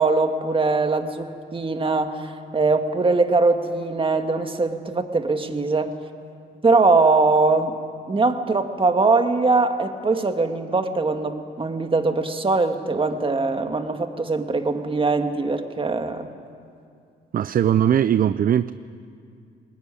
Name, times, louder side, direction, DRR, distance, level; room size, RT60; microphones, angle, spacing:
voice 1, 0.0-5.9 6.6-7.8 8.1-16.3, right 3 dB, 25° right, 7 dB, 1.9 m, -21 dB
voice 2, 17.3-18.7, right 9 dB, 45° right, 15 dB, 0.5 m, -19 dB
21.0 x 19.5 x 9.9 m, 2.4 s
cardioid pair, 90°, 20 cm